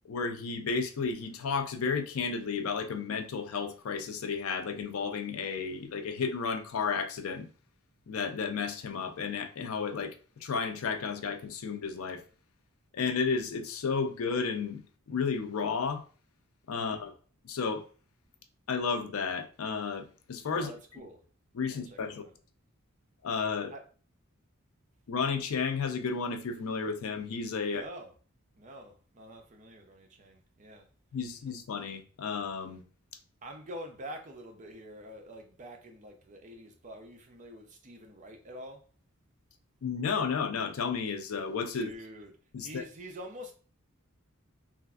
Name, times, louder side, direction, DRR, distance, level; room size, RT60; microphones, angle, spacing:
voice 1, 0.1-7.5 8.1-10.1 10.4-12.2 12.9-14.8 15.1-16.0 16.7-17.1 17.4-17.8 18.7-20.7 21.5-22.2 23.2-23.7 25.1-27.8 31.1-32.8 39.8-41.9 42.5-42.8, left 5 dB, 80° left, 0.4 m, -32 dB
voice 2, 16.8-17.1 20.5-21.2 21.7-22.3 23.7-23.8 27.7-28.1 28.5-30.9 33.4-38.9 41.7-43.5, equal, 35° right, 0.5 m, -46 dB
3.2 x 2.4 x 2.3 m
head